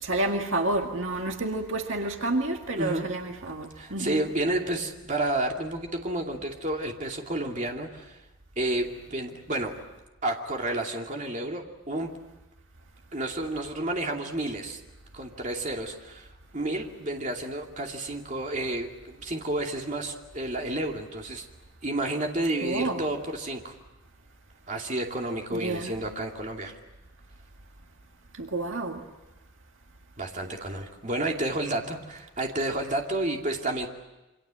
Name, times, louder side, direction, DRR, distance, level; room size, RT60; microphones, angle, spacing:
voice 1, 0.0-4.2 22.6-23.0 25.5-26.0 28.4-29.0, right 2 dB, 65° right, 3 dB, 2.0 m, -29 dB
voice 2, 3.8-8.2 8.6-9.7 10.2-12.1 13.1-14.8 15.1-16.3 16.5-21.5 21.8-23.7 24.7-26.8 30.2-33.9, right 1 dB, 35° right, 1 dB, 2.6 m, -30 dB
28.0 x 25.0 x 7.7 m, 1.0 s
head